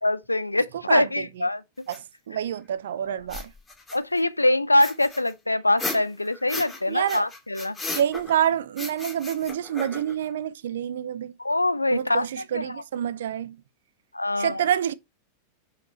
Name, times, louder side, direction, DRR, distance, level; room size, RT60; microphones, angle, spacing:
voice 1, 0.0-1.6 3.0-3.2 3.9-7.8 11.4-12.3 12.5-12.8 14.1-14.6, left 2 dB, 85° left, 0.4 m, -24 dB
voice 2, 0.9-1.3 1.9-3.5 6.9-7.3 7.9-11.3 11.9-13.6 14.4-14.9, right 10 dB, 60° right, 0.5 m, -27 dB
sound 1, 1.9-2.0 3.2-4.2 4.8-6.8 7.1-8.4 8.8-10.2, left 3 dB, 15° left, 2.2 m, -35 dB
5.2 x 5.1 x 4.2 m
figure-of-eight pair, 90°, 0 cm